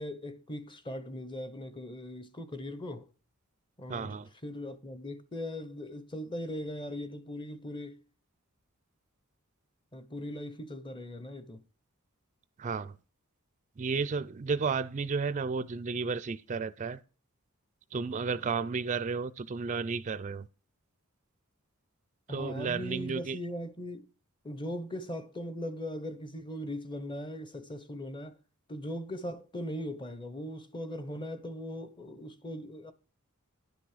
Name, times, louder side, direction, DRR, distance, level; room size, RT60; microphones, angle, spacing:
voice 1, 0.0-3.1 3.8-4.2 4.4-8.0 9.9-11.6 22.3-24.0 24.4-28.4 28.7-32.9, equal, 20° left, 0.8 m, -39 dB
voice 2, 3.9-4.3 12.6-13.0 13.8-17.0 17.9-20.5 22.3-23.4, right 5 dB, 35° right, 0.4 m, -32 dB
10.5 x 6.0 x 4.9 m
head